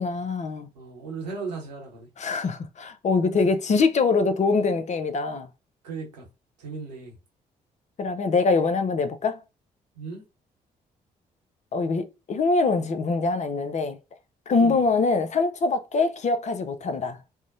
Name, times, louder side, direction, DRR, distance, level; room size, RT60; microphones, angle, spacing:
voice 1, 0.0-0.7 2.2-5.5 8.0-9.4 11.7-14.0 14.5-17.2, left 4 dB, 35° left, 0.5 m, -24 dB
voice 2, 0.7-2.1 5.8-6.2 6.6-7.1 10.0-10.2 14.6-14.8, right 4 dB, 85° right, 0.9 m, -36 dB
2.6 x 2.0 x 2.6 m
figure-of-eight pair, 40°, 21 cm